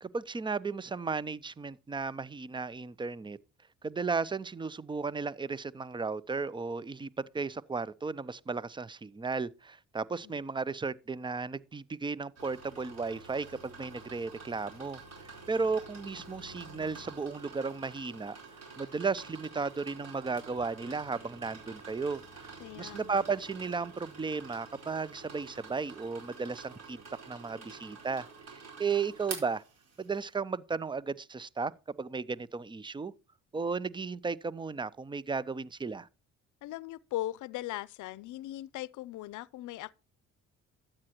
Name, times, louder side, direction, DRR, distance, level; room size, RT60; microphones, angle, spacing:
voice 1, 0.0-3.4 3.8-7.1 7.3-22.5 22.8-27.0 27.3-29.6 30.0-31.7 32.0-33.1 33.5-36.1, right 4 dB, 15° right, 0.5 m, -35 dB
sound 1, 12.3-30.3, right 4 dB, 55° right, 4.7 m, -48 dB
voice 2, 22.6-23.1 36.6-39.9, left 15 dB, 80° left, 0.6 m, -39 dB
12.5 x 8.7 x 2.9 m
cardioid pair, 90°, 30 cm